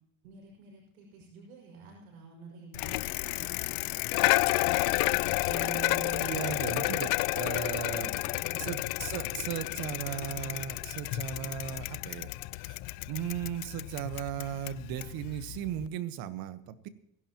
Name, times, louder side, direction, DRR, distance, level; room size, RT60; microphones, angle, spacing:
voice 1, 0.2-4.7 7.9-8.9, right 4 dB, 90° right, -1 dB, 5.5 m, -51 dB
Bicycle, 2.7-15.9, left 22 dB, 60° left, 0.5 m, -31 dB
voice 2, 5.4-8.1 8.6-12.3 12.6-12.8 13.1-16.9, right 10 dB, 60° right, 12 dB, 1.3 m, -37 dB
28.0 x 11.0 x 3.0 m, 0.76 s
supercardioid pair, 120°, 41 cm